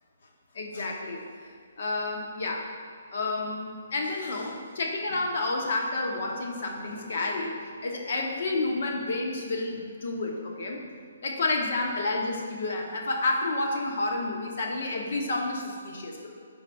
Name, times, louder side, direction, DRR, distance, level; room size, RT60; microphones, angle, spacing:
voice 1, 0.5-1.5 1.8-2.6 3.1-7.5 7.8-10.8 11.2-16.3, left 2 dB, 60° left, 0 dB, 1.2 m, -30 dB
5.1 x 3.9 x 5.6 m, 2.3 s
hypercardioid pair, 150°, 0 cm